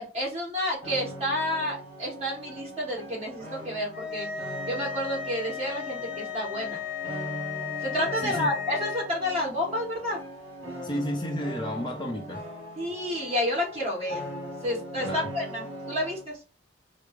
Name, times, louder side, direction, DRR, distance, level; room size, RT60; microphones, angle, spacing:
voice 1, 0.0-4.3 4.7-6.8 7.8-10.2 12.8-14.2 14.6-16.4, left 1 dB, 30° right, 1.7 m, -30 dB
sound 1, 0.8-16.3, right 1 dB, 55° right, 1.9 m, -40 dB
sound 2, 3.9-9.1, left 8 dB, 60° left, 0.9 m, -35 dB
voice 2, 8.2-8.5 10.8-12.4 15.0-15.3, equal, 25° left, 0.5 m, -32 dB
4.6 x 2.0 x 3.2 m
head